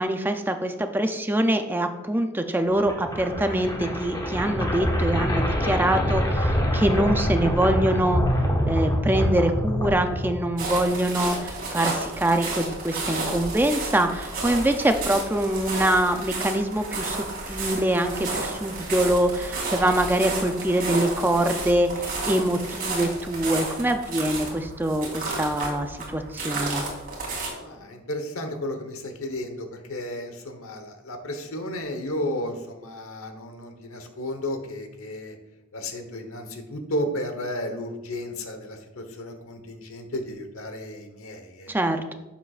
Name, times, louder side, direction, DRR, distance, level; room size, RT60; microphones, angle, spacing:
voice 1, 0.0-8.2 8.7-26.8 41.7-42.1, right 1 dB, 10° right, 6 dB, 0.5 m, -24 dB
sound 1, 2.7-10.8, equal, 20° left, 1.1 m, -25 dB
sound 2, 10.6-27.5, right 2 dB, 45° right, 2.6 m, -32 dB
voice 2, 27.6-35.4 35.7-41.7, left 1 dB, 80° left, 6 dB, 1.1 m, -33 dB
11.0 x 7.1 x 2.5 m, 1.0 s
head